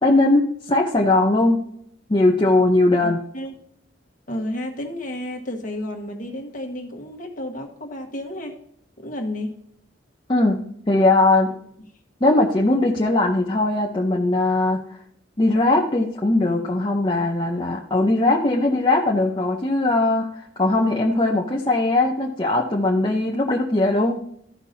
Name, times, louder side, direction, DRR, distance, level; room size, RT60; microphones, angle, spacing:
voice 1, 0.0-1.6 2.1-3.2 10.3-10.6 10.9-11.5 12.2-14.8 15.4-20.3 20.6-24.2, left 2 dB, 25° left, -2 dB, 0.7 m, -19 dB
voice 2, 3.0-3.5 4.3-8.6 9.0-9.5, left 1 dB, 40° left, 2 dB, 1.5 m, -31 dB
13.5 x 5.9 x 2.7 m, 0.68 s
head